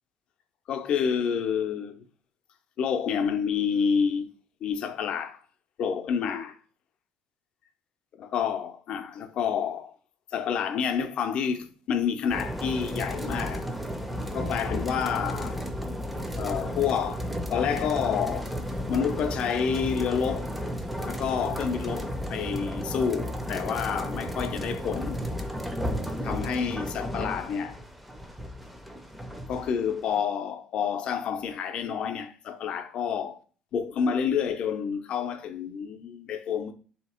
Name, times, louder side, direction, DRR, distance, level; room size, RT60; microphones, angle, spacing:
voice 1, 0.7-2.0 2.8-4.3 4.6-5.4 5.8-6.6 8.2-9.9 10.3-13.7 14.3-15.6 16.4-18.5 18.9-20.5 21.0-25.2 26.2-27.8 29.5-33.4 33.7-36.7, left 7 dB, 50° left, 0.5 m, -29 dB
sound 1, 12.3-30.2, equal, 5° right, 0.4 m, -33 dB
3.4 x 2.8 x 4.3 m
cardioid pair, 130°, 2 cm